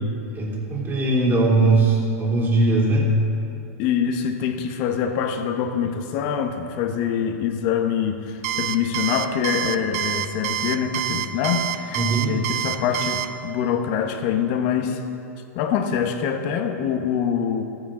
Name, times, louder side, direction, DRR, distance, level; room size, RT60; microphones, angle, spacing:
voice 1, 0.3-3.0 11.9-12.4, right 2 dB, 25° right, -4 dB, 2.8 m, -20 dB
voice 2, 3.8-15.0 15.5-17.6, left 7 dB, 50° left, 6 dB, 1.1 m, -25 dB
Alarm, 8.4-13.3, right 12 dB, 60° right, 0.5 m, -26 dB
14.0 x 9.3 x 3.8 m, 2.8 s
hypercardioid pair, 120°, 9 cm